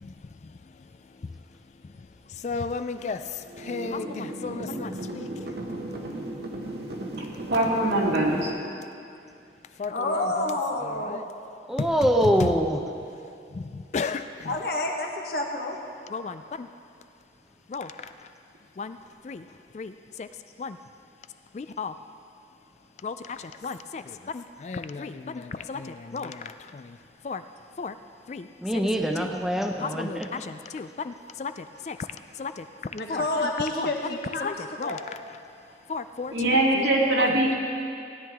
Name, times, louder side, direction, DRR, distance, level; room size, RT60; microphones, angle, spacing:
voice 1, 0.0-5.6 9.8-11.2 12.2-12.5 13.5-14.6 16.1-16.7 17.7-18.3 18.8-19.0 19.2-20.3 20.6-20.8 21.5-21.9 23.0-27.0 27.2-27.4 27.8-28.0 28.3-28.5 29.2-29.3 29.8-32.1 32.3-32.7 33.1-33.5 33.8-35.4 35.9-36.9 37.2-37.3, left 4 dB, 40° left, 10 dB, 0.3 m, -35 dB
sound 1, 3.5-8.5, right 1 dB, 60° right, 1.1 m, -35 dB
voice 2, 7.5-8.5 36.3-37.5, right 1 dB, 90° right, -3 dB, 2.1 m, -22 dB
voice 3, 9.9-11.3 14.4-15.8 32.9-34.5 34.8-35.0, left 2 dB, 60° left, 1 dB, 1.3 m, -29 dB
voice 4, 11.7-12.8 28.6-30.4, equal, ahead, 3 dB, 0.6 m, -24 dB
16.5 x 10.5 x 3.5 m, 2.5 s
head